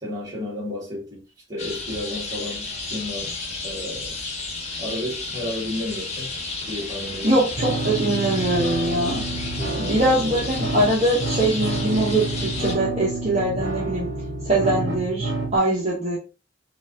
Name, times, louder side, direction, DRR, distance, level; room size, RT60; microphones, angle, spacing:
voice 1, 0.0-1.2 1.5-4.2 4.8-6.3 6.7-7.4 9.6-10.1, left 1 dB, 20° right, 1.9 m, -32 dB
sound 1, 1.6-12.7, left 3 dB, 35° left, 1.0 m, -32 dB
voice 2, 7.2-9.2 9.8-14.1 14.4-16.2, right 1 dB, 35° right, 1.1 m, -22 dB
sound 2, 7.6-15.6, right 2 dB, 50° right, 1.3 m, -29 dB
5.0 x 2.6 x 3.6 m
head